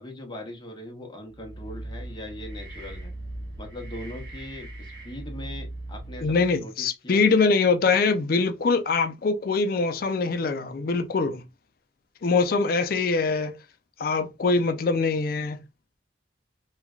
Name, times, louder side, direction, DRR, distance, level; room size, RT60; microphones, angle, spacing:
voice 1, 0.0-3.1 3.6-7.2, left 1 dB, 25° left, 0.8 m, -40 dB
sound 1, 1.3-6.6, right 1 dB, 70° right, 1.0 m, -39 dB
voice 2, 6.2-11.4 12.2-13.6 14.0-15.6, left 4 dB, 50° left, 0.4 m, -23 dB
3.1 x 2.3 x 2.3 m
head